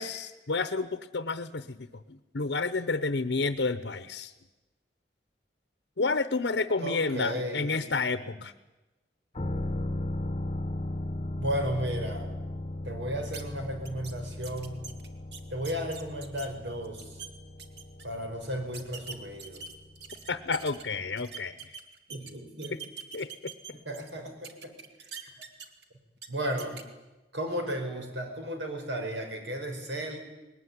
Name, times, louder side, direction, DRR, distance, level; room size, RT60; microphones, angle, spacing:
voice 1, 0.0-4.3 6.0-8.5 20.3-21.5 23.1-23.3, left 3 dB, 75° left, 11 dB, 0.9 m, -30 dB
voice 2, 6.8-7.9 11.3-12.2 12.8-14.9 15.5-17.2 18.0-19.6 22.1-22.7 23.8-24.7 25.0-25.4 26.3-26.8 27.3-30.2, equal, 85° right, 4 dB, 5.1 m, -34 dB
sound 1, 9.3-20.9 21.2-21.3, left 1 dB, 30° left, 0.9 m, -37 dB
sound 2, 13.3-13.4 13.9-14.1 14.4-16.5 16.8-17.3 17.6-18.1 18.7-20.8 21.2-22.3 22.6-24.1 24.4-25.8 26.2-26.3 26.6-26.8, right 6 dB, 65° right, 2.1 m, -43 dB
21.0 x 19.5 x 9.7 m, 1.1 s
head